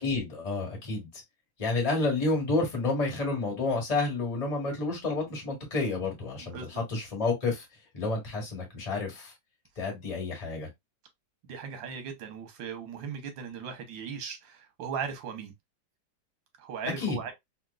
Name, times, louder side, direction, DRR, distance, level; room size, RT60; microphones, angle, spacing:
voice 1, 0.0-1.1 1.6-6.6 6.9-7.6 7.9-9.3 9.8-10.7 17.0-17.2, left 3 dB, 25° left, 1.3 m, -30 dB
voice 2, 6.5-6.8 11.5-15.5 16.6-17.3, right 6 dB, 85° right, 1.6 m, -38 dB
3.6 x 2.8 x 2.2 m
omnidirectional pair, 2.0 m